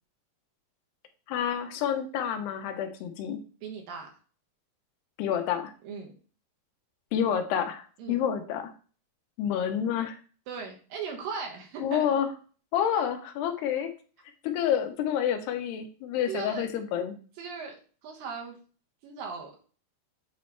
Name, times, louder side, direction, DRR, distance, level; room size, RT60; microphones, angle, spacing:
voice 1, 1.3-3.4 5.2-5.7 7.1-8.7 9.4-10.2 11.8-12.3 12.7-13.9 14.4-17.2, left 9 dB, 90° left, 6 dB, 2.9 m, -28 dB
voice 2, 3.6-4.1 5.8-6.1 8.0-8.2 10.5-12.1 12.9-13.1 16.3-16.7 17.4-17.7 18.0-18.6 19.0-19.6, right 5 dB, 70° right, 1 dB, 2.6 m, -38 dB
8.6 x 3.1 x 4.6 m, 0.39 s
omnidirectional pair, 4.7 m